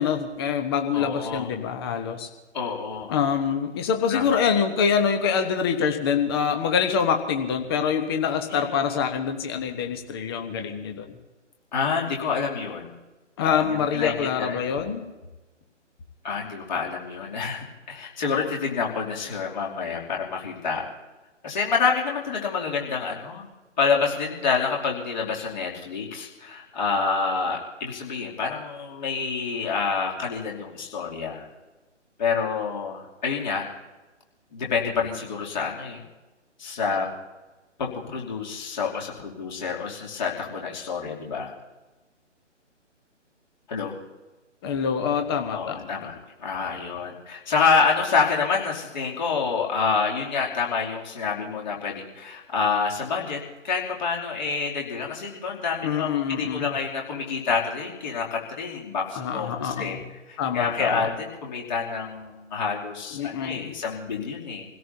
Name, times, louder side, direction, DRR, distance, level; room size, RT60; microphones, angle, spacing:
voice 1, 0.0-2.3 3.1-11.2 13.4-15.0 44.6-45.9 55.8-56.8 59.1-60.0 60.4-61.1 63.1-63.7, left 7 dB, 20° left, 5 dB, 1.1 m, -25 dB
voice 2, 0.9-1.5 2.5-3.1 4.1-4.4 8.5-8.7 11.7-12.9 13.4-14.6 16.2-20.9 21.4-23.5 23.8-31.5 32.2-33.7 34.5-36.0 36.6-37.1 37.8-41.5 43.7-44.0 45.5-60.0 60.3-64.6, left 5 dB, 40° left, -2 dB, 2.9 m, -28 dB
27.5 x 17.0 x 2.8 m, 1.2 s
figure-of-eight pair, 135°, 37 cm